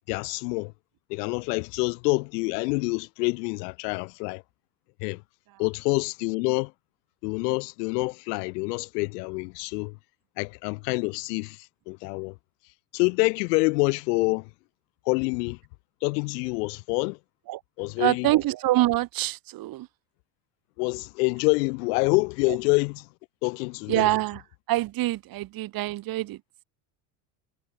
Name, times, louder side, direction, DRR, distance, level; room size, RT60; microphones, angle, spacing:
voice 1, 0.1-0.7 1.1-4.4 5.0-5.2 5.6-6.7 7.2-9.9 10.4-11.6 11.9-12.3 12.9-14.5 15.1-15.6 16.0-17.2 17.8-18.3 20.8-23.0 23.4-24.1, left 29 dB, 85° left, 3.3 m, -26 dB
voice 2, 18.0-19.9 23.9-24.4 24.7-26.4, right 16 dB, 45° right, 4.7 m, -25 dB
cardioid pair, 155°, 47 cm